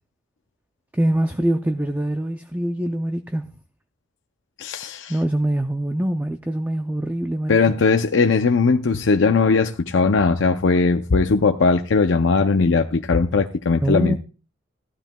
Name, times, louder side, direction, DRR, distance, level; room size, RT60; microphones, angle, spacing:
voice 1, 0.9-3.4 5.1-7.6 13.8-14.2, right 1 dB, 10° right, 0.4 m, -23 dB
voice 2, 4.6-5.1 7.5-14.2, left 4 dB, 65° left, 0.5 m, -19 dB
16.0 x 12.0 x 2.2 m
head